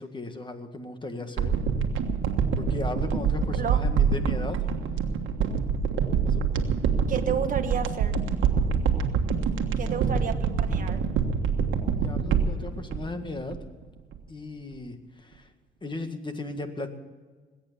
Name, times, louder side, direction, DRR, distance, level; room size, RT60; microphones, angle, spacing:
voice 1, 0.0-1.5 2.6-4.7 6.1-6.4 9.7-10.0 11.9-13.6 14.3-15.5 15.8-16.9, left 2 dB, 25° left, 7 dB, 1.8 m, -36 dB
sound 1, 1.4-13.8 14.1-14.2, right 6 dB, 80° right, 1.4 m, -26 dB
voice 2, 7.1-8.2 9.8-11.0, right 7 dB, 45° right, 6 dB, 1.4 m, -31 dB
20.0 x 8.9 x 6.9 m, 1.4 s
cardioid pair, 90°, 20 cm